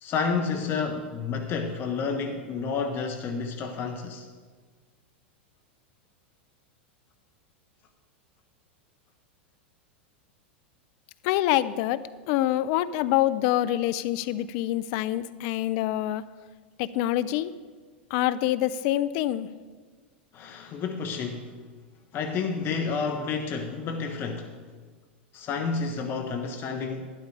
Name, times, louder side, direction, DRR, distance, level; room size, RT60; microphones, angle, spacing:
voice 1, 0.0-4.3 20.3-21.5 22.1-24.6 25.3-27.1, left 5 dB, 40° left, 4 dB, 1.2 m, -30 dB
voice 2, 11.2-16.2 16.8-17.5 18.1-19.5, left 13 dB, 55° left, 15 dB, 0.6 m, -26 dB
12.0 x 11.0 x 4.8 m, 1.5 s
hypercardioid pair, 100°, 6 cm